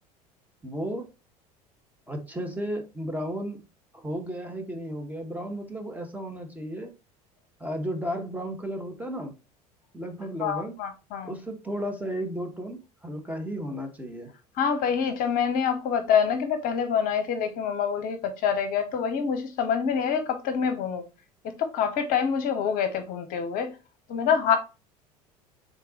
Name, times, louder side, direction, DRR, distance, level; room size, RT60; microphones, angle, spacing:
voice 1, 0.6-1.1 2.1-3.6 3.9-6.9 7.6-9.3 9.9-10.8 11.2-14.3, equal, 10° right, 1.0 m, -34 dB
voice 2, 10.4-11.4 14.6-21.0 21.6-23.8 24.1-24.6, left 7 dB, 45° left, 0.8 m, -26 dB
3.8 x 3.7 x 2.8 m
figure-of-eight pair, 70°, 20 cm